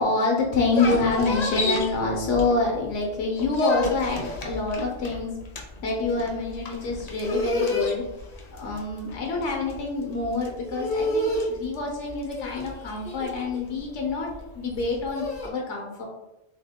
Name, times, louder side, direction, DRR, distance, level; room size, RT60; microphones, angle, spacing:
voice 1, 0.0-5.4 5.8-8.0 8.5-16.0, left 3 dB, 85° left, 0 dB, 1.1 m, -27 dB
sound 1, 0.5-2.9 3.2-15.5, left 2 dB, 45° left, 0.6 m, -29 dB
3.2 x 2.8 x 3.5 m, 0.95 s
omnidirectional pair, 1.2 m